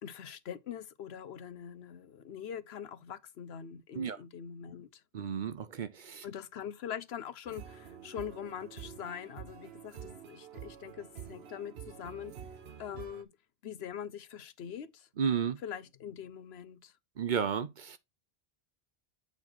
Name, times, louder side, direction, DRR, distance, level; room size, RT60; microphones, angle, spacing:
voice 1, 0.0-5.0 6.2-12.3 12.8-13.3 13.6-15.1 15.6-16.9, left 8 dB, 75° left, 1.0 m, -43 dB
voice 2, 5.1-6.3 15.2-15.6 17.2-18.0, right 7 dB, 55° right, 0.8 m, -32 dB
sound 1, 7.5-13.2, right 8 dB, 80° right, 1.2 m, -48 dB
8.2 x 4.1 x 4.3 m
omnidirectional pair, 1.1 m